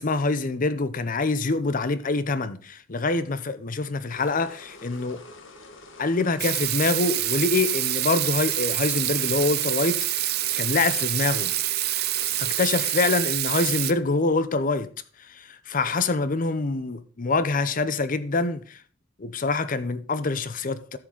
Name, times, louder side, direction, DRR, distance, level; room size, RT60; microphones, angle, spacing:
voice 1, 0.0-5.2 6.0-11.5 12.4-14.9 15.2-18.8 19.2-21.0, left 3 dB, 45° left, 0.7 m, -25 dB
sound 1, 4.1-12.9, left 2 dB, 80° left, 1.5 m, -46 dB
Water tap faucet / Sink (filling or washing), 6.4-13.9, right 15 dB, 55° right, 0.6 m, -26 dB
13.0 x 7.3 x 3.8 m
head